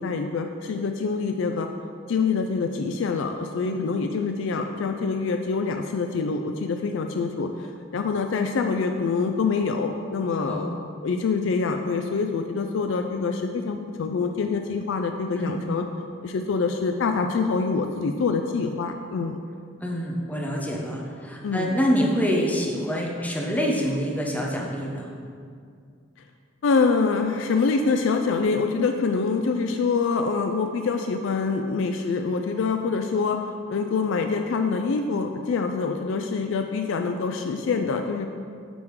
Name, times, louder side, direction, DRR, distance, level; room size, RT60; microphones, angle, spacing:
voice 1, 0.0-1.7 2.1-10.7 11.0-15.8 16.2-19.4 21.4-21.7 26.6-33.4 33.7-38.3, left 4 dB, 70° left, 5 dB, 0.4 m, -25 dB
voice 2, 10.4-10.7 15.4-15.6 19.8-25.1, equal, 10° left, -2 dB, 0.8 m, -26 dB
9.1 x 3.6 x 4.7 m, 2.2 s
head